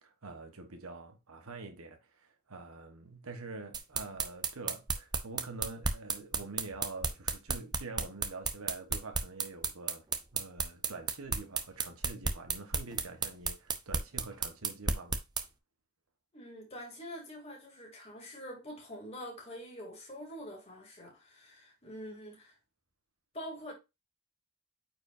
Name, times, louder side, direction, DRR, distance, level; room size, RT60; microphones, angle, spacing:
voice 1, 0.0-10.1 10.3-15.2, right 3 dB, 75° right, 1.3 m, -46 dB
sound 1, 3.7-15.4, right 5 dB, 20° right, 0.6 m, -32 dB
voice 2, 16.3-22.6 23.3-23.7, equal, 25° left, 2.7 m, -45 dB
8.9 x 4.9 x 2.6 m
head